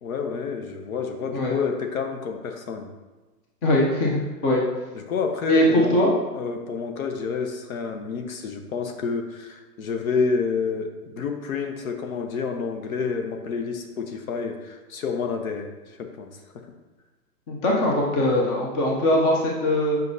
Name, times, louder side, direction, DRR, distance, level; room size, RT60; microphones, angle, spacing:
voice 1, 0.0-2.9 4.9-5.9 6.3-16.3, left 5 dB, 55° left, 5 dB, 1.0 m, -29 dB
voice 2, 3.6-4.6 5.5-6.1 17.5-20.0, left 1 dB, 15° left, -2 dB, 0.6 m, -21 dB
8.0 x 5.3 x 2.7 m, 1.2 s
hypercardioid pair, 145°, 49 cm